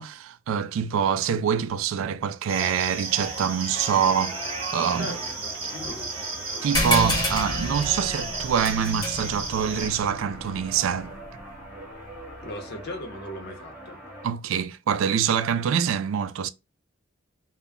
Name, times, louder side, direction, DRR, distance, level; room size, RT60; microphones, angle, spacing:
voice 1, 0.0-4.4 4.7-5.2 6.6-11.1 14.2-16.5, right 8 dB, 75° right, 0.3 m, -25 dB
sound 1, 2.5-9.9, right 3 dB, 30° right, 0.8 m, -33 dB
sound 2, 3.2-14.2, equal, 5° right, 0.9 m, -43 dB
voice 2, 5.7-6.3 12.4-14.0, left 1 dB, 55° left, 0.7 m, -38 dB
sound 3, 6.7-11.7, left 1 dB, 20° left, 0.7 m, -30 dB
2.2 x 2.0 x 3.4 m
head